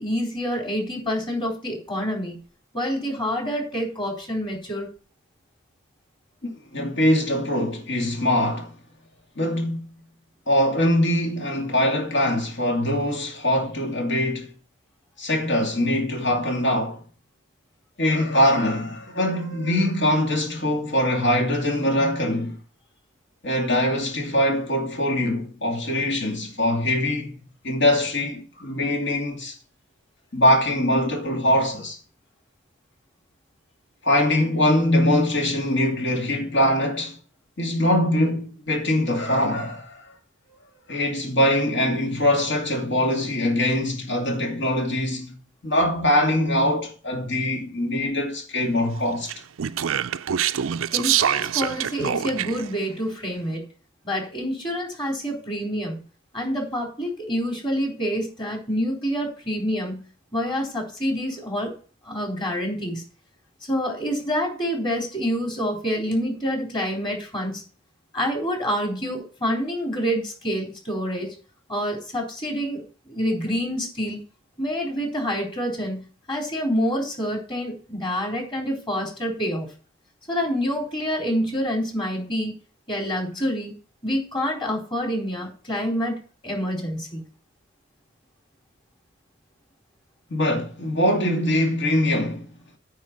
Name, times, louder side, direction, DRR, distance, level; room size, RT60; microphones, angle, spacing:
voice 1, 0.0-2.4 2.7-4.9 50.9-53.6 54.0-56.0 56.3-60.0 60.3-61.7 62.0-63.0 63.7-67.6 68.1-71.3 71.7-74.2 74.6-79.7 80.3-82.5 82.9-83.7 84.0-86.2 86.4-87.2, equal, 25° left, 4.0 m, -27 dB
voice 2, 6.4-8.7 9.4-9.9 10.5-14.5 15.2-17.0 18.0-22.6 23.4-27.3 27.6-29.5 30.3-32.0 34.0-37.2 37.6-40.1 40.9-45.4 45.6-49.3 90.3-92.5, left 1 dB, 60° left, 2.6 m, -22 dB
Speech, 49.2-52.7, right 9 dB, 85° right, 0.4 m, -25 dB
9.5 x 4.7 x 7.6 m
head